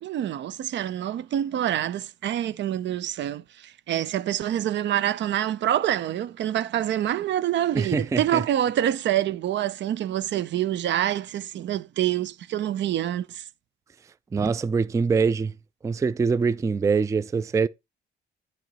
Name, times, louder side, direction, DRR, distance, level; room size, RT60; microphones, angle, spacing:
voice 1, 0.0-13.4, right 11 dB, 65° right, 0.5 m, -26 dB
voice 2, 7.7-8.4 14.3-15.5 15.8-17.7, right 5 dB, 15° right, 0.3 m, -24 dB
9.0 x 3.1 x 5.3 m
cardioid pair, 90°, 20 cm